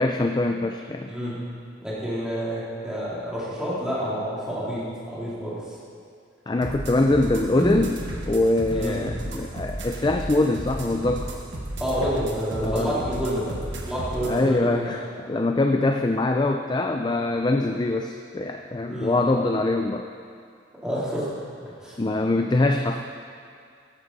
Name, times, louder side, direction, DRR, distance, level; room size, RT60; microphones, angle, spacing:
voice 1, 0.0-1.1 6.5-7.9 8.3-11.3 12.6-13.0 14.3-20.0 22.0-23.0, left 2 dB, 20° left, 5 dB, 0.4 m, -23 dB
voice 2, 1.8-4.8 5.1-5.6 7.5-7.8 8.7-9.0 11.8-14.9 18.9-19.2 20.8-21.3 21.8-22.0, equal, 5° right, -9 dB, 3.2 m, -28 dB
sound 1, 6.6-14.4, right 1 dB, 70° right, 1.3 m, -34 dB
14.0 x 10.5 x 4.0 m, 2.3 s
head